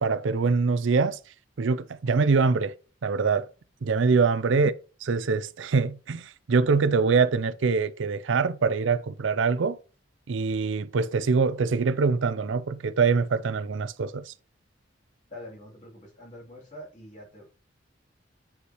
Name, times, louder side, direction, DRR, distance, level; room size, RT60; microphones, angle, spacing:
voice 1, 0.0-1.2 1.6-2.7 3.0-3.5 3.8-4.7 5.0-9.8 10.3-14.3, right 4 dB, 75° right, 0.5 m, -24 dB
voice 2, 15.3-17.5, left 1 dB, 40° left, 3.2 m, -45 dB
8.0 x 5.6 x 3.0 m
head